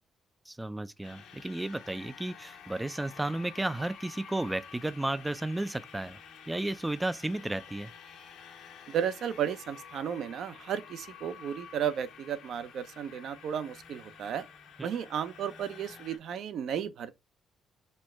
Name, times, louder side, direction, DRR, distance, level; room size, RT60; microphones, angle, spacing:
voice 1, 0.5-6.2 6.5-7.9, right 1 dB, 10° right, 0.3 m, -33 dB
sound 1, 1.0-16.2, left 7 dB, 90° left, 1.2 m, -50 dB
voice 2, 8.9-14.5 14.8-17.2, right 8 dB, 70° right, 0.6 m, -34 dB
4.4 x 2.2 x 4.4 m
cardioid pair, 90°, 0 cm